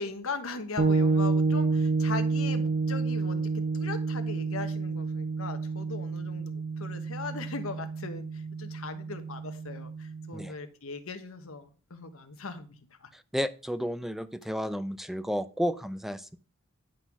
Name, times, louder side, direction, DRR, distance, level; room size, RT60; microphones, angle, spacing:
voice 1, 0.0-12.7 13.0-13.1, left 4 dB, 70° left, 8 dB, 1.1 m, -39 dB
sound 1, 0.8-10.4, right 4 dB, 40° right, 1.0 m, -29 dB
voice 2, 13.1-16.4, equal, ahead, 13 dB, 0.4 m, -32 dB
10.0 x 3.9 x 6.0 m, 0.38 s
head